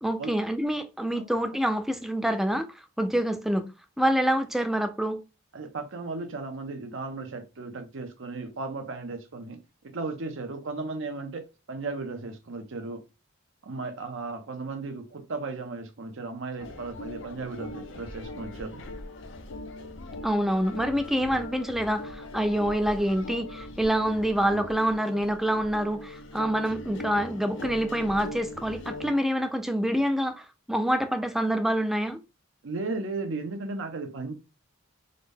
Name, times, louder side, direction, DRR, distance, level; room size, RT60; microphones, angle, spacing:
voice 1, 0.0-2.7 3.0-3.7 4.0-5.2 20.2-32.2, equal, ahead, 0.3 m, -26 dB
voice 2, 5.5-9.6 9.9-13.0 13.6-18.8 32.6-34.3, right 3 dB, 65° right, 0.7 m, -35 dB
sound 1, 16.6-29.1, left 2 dB, 65° left, 0.5 m, -40 dB
3.9 x 2.1 x 3.4 m
head